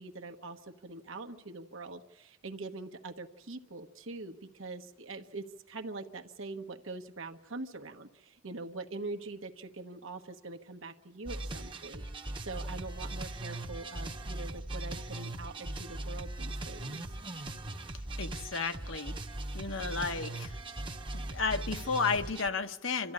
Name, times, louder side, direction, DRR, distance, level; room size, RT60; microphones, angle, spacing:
voice 1, 0.0-12.0 12.4-17.0, right 3 dB, 65° right, 1.2 m, -43 dB
sound 1, 11.3-22.5, right 2 dB, 25° right, 1.0 m, -39 dB
voice 2, 18.2-19.1 19.5-20.5 21.1-23.1, left 4 dB, 65° left, 1.1 m, -33 dB
27.5 x 13.5 x 9.8 m
head